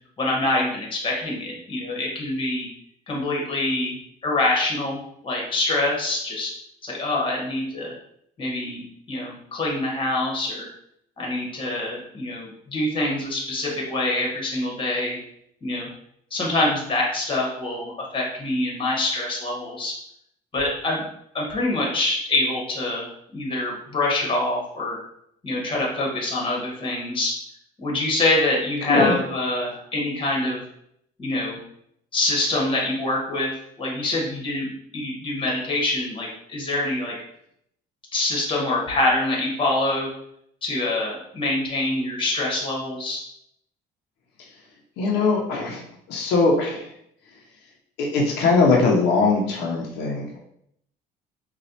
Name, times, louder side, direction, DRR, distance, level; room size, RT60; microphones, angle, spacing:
voice 1, 0.2-2.7 3.1-6.5 6.8-7.9 8.4-10.7 11.2-15.2 15.6-15.9 16.3-19.9 20.5-21.0 21.3-23.1 23.3-25.0 25.4-27.3 27.8-30.6 31.2-31.6 32.1-33.5 33.8-37.1 38.1-40.1 40.6-43.2, left 2 dB, 30° left, -2 dB, 1.3 m, -25 dB
voice 2, 45.0-45.8 46.1-46.8 48.0-50.3, left 3 dB, 90° left, -1 dB, 0.7 m, -20 dB
4.1 x 2.3 x 2.7 m, 0.72 s
cardioid pair, 110°, 17 cm